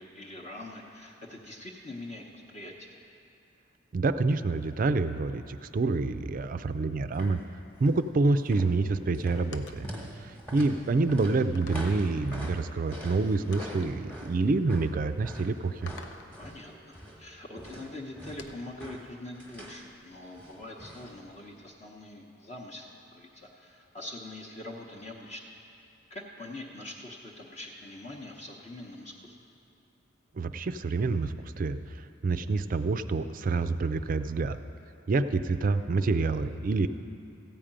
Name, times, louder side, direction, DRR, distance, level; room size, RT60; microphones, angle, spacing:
voice 1, 0.0-3.0 16.4-25.4 26.1-29.4, left 1 dB, 35° left, -2 dB, 0.9 m, -44 dB
voice 2, 3.9-7.4 7.8-9.9 10.2-15.9 30.4-34.6 35.1-36.9, right 3 dB, 45° right, 11 dB, 0.4 m, -27 dB
sound 1, 7.1-7.5 7.7-8.1 8.3-17.3 17.6-19.9 20.4-21.2 21.4-21.5, equal, 5° left, 1.1 m, -44 dB
sound 2, 9.5-10.0 10.7-10.8 11.6-12.1 13.5-14.0 15.9-16.4 18.4-18.8, left 4 dB, 65° left, 0.6 m, -47 dB
14.5 x 5.1 x 8.8 m, 2.7 s
head